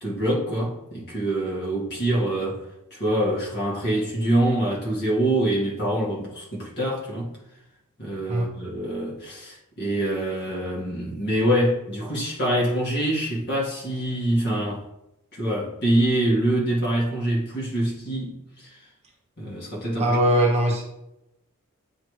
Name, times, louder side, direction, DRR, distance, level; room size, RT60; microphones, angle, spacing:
voice 1, 0.0-2.6 2.9-7.4 8.0-14.8 15.3-18.8 19.4-20.2, right 1 dB, 50° left, -5 dB, 1.8 m, -25 dB
voice 2, 20.0-20.8, right 1 dB, 30° right, -1 dB, 1.0 m, -21 dB
9.0 x 3.5 x 3.2 m, 0.88 s
head